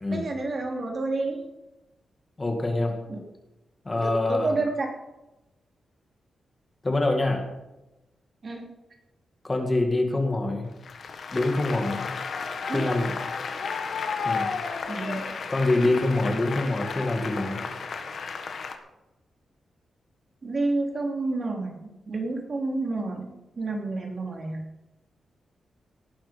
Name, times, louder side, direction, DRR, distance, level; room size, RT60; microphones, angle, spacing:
voice 1, 0.1-1.4 3.1-3.2 4.3-4.9 8.4-8.7 12.7-12.9 14.9-15.2 20.4-24.6, right 3 dB, 35° right, 1 dB, 3.1 m, -29 dB
voice 2, 2.4-3.0 3.9-4.5 6.8-7.5 9.4-10.7 11.3-12.1 12.7-13.2 14.2-14.5 15.5-17.6, left 2 dB, 20° left, 3 dB, 1.9 m, -25 dB
Applause, 10.8-18.8, left 5 dB, 50° left, 1.5 m, -33 dB
18.5 x 11.5 x 5.1 m, 1.0 s
wide cardioid pair, 175°, 0 cm